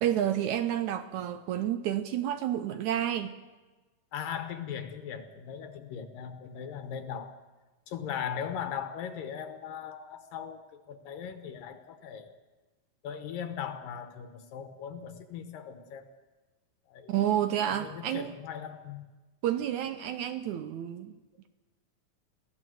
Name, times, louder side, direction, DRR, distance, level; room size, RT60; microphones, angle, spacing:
voice 1, 0.0-3.3 17.1-18.3 19.4-21.2, right 11 dB, 75° right, 11 dB, 1.8 m, -30 dB
voice 2, 4.1-7.3 7.9-12.4 13.0-16.1 16.9-17.1 17.7-19.1, left 8 dB, 70° left, 9 dB, 2.8 m, -39 dB
22.0 x 16.0 x 7.7 m, 1.2 s
omnidirectional pair, 4.2 m